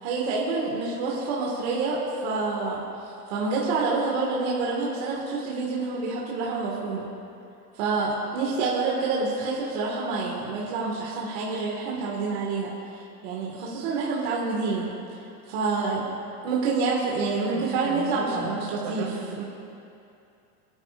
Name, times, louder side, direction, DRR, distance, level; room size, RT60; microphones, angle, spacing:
voice 1, 0.0-2.8 3.3-7.1 7.8-14.9 15.5-16.0 16.4-19.4, right 4 dB, 40° right, -4 dB, 1.8 m, -27 dB
voice 2, 17.5-19.4, right 3 dB, 80° right, 0 dB, 2.9 m, -37 dB
28.0 x 10.5 x 2.5 m, 2.7 s
supercardioid pair, 175°, 47 cm